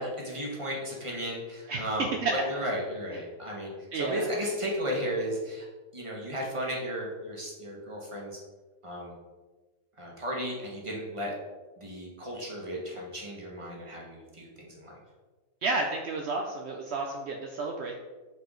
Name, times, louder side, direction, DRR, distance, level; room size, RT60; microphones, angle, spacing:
voice 1, 0.2-5.6 5.9-8.4 8.8-9.1 10.0-11.3 11.8-15.0, equal, 20° right, -2 dB, 1.4 m, -34 dB
voice 2, 3.9-4.3 15.6-17.9, right 3 dB, 65° right, 2 dB, 0.6 m, -31 dB
6.7 x 4.9 x 3.8 m, 1.3 s
omnidirectional pair, 1.8 m